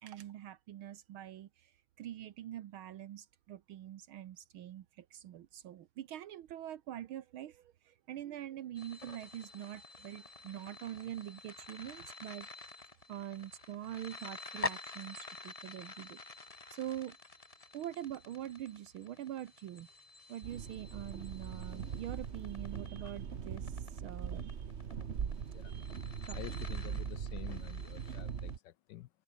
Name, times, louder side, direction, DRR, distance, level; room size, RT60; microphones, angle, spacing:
voice 1, 0.0-12.5 13.1-16.2 16.7-17.2 17.7-19.9 20.3-24.7 25.6-26.0 26.2-26.4, right 12 dB, 80° right, 1.8 m, -44 dB
sound 1, 8.7-28.5, left 3 dB, 20° left, 1.4 m, -48 dB
sound 2, 20.4-28.6, right 7 dB, 40° right, 1.1 m, -41 dB
voice 2, 26.3-29.1, left 14 dB, 70° left, 1.1 m, -49 dB
omnidirectional pair, 2.3 m